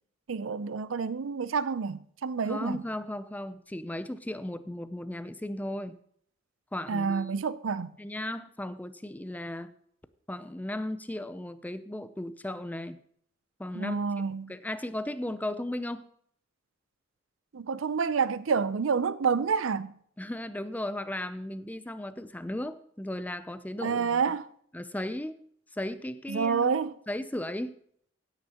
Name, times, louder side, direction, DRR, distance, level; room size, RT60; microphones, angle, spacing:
voice 1, 0.3-2.8 6.9-8.0 13.7-14.5 17.5-19.9 23.8-24.5 26.3-26.9, right 5 dB, 80° right, 0.5 m, -28 dB
voice 2, 2.5-6.0 6.7-7.4 8.0-9.7 10.3-13.0 13.6-14.0 14.5-16.1 20.2-24.2 24.7-25.4 25.7-26.8 27.1-27.8, left 1 dB, 10° left, 0.5 m, -36 dB
16.5 x 8.9 x 2.9 m
head